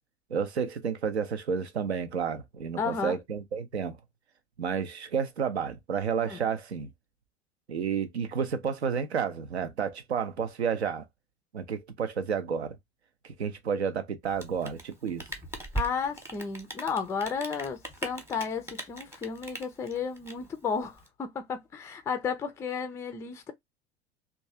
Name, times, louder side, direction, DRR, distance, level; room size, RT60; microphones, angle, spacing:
voice 1, 0.3-4.0 4.6-6.9 7.7-11.0 11.5-12.8 13.2-15.2, right 6 dB, 80° right, 0.6 m, -31 dB
voice 2, 2.8-3.2 6.2-6.5 15.7-23.5, left 6 dB, 10° left, 0.3 m, -33 dB
Rain, 14.2-21.1, right 2 dB, 10° right, 0.9 m, -39 dB
3.0 x 2.3 x 2.6 m
figure-of-eight pair, 75°, 32 cm